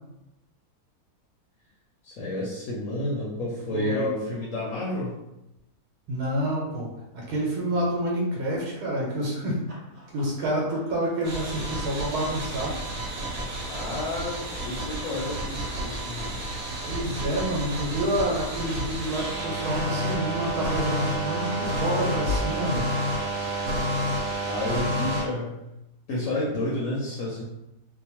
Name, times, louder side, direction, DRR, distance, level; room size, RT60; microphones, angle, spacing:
voice 1, 2.0-5.2 13.7-16.4 24.4-25.6 26.1-27.4, left 1 dB, 65° left, -5 dB, 0.9 m, -30 dB
voice 2, 3.7-4.1 6.1-9.6 10.1-12.8 16.8-22.9, right 1 dB, 85° right, -3 dB, 1.2 m, -28 dB
Run, 9.7-14.0 14.7-21.7 22.0-25.1, right 1 dB, 40° right, 0.5 m, -49 dB
sound 1, 11.2-25.3, equal, 70° right, 1.1 m, -30 dB
2.8 x 2.1 x 2.9 m, 0.91 s
omnidirectional pair, 1.6 m